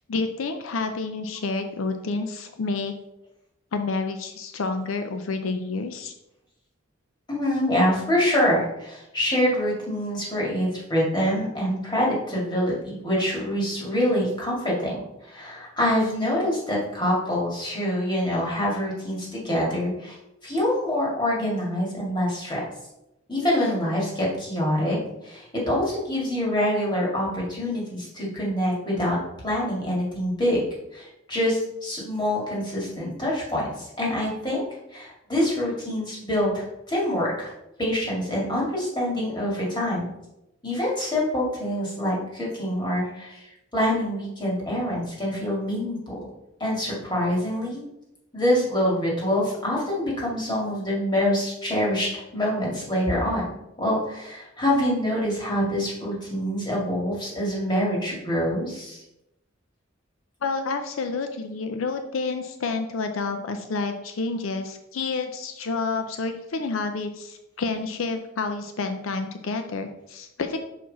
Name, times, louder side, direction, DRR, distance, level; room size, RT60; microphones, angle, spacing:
voice 1, 0.1-2.9 3.7-6.1 60.4-70.6, left 4 dB, 85° left, 7 dB, 0.5 m, -29 dB
voice 2, 7.3-20.2 20.4-22.7 23.3-25.0 25.2-29.2 29.4-30.6 30.9-33.7 34.0-34.6 34.9-37.5 37.8-40.1 40.6-43.4 43.7-46.2 46.6-47.8 48.3-53.4 53.8-59.0, left 1 dB, 25° left, -4 dB, 2.1 m, -25 dB
5.9 x 4.6 x 4.1 m, 0.87 s
head